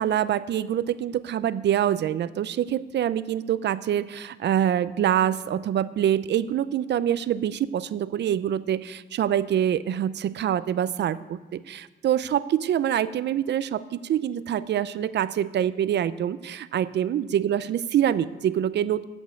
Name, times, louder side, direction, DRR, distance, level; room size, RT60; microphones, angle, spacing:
voice 1, 0.0-19.0, right 10 dB, 60° right, 15 dB, 0.6 m, -25 dB
14.0 x 5.4 x 8.4 m, 1.2 s
cardioid pair, 90°, 20 cm